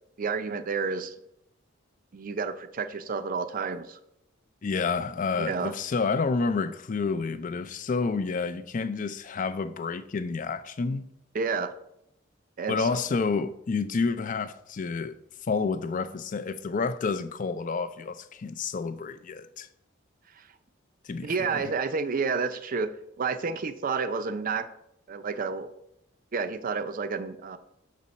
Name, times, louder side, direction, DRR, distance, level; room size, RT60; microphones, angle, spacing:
voice 1, 0.2-1.1 2.1-4.0 5.4-5.7 11.3-11.7 12.6-13.0 21.2-22.9 23.2-24.7 25.1-25.7 26.3-27.6, right 5 dB, 45° right, 0.5 m, -30 dB
voice 2, 4.6-11.0 12.7-15.2 15.4-19.7 21.0-21.7, left 4 dB, 40° left, 0.4 m, -29 dB
6.4 x 4.2 x 5.2 m
head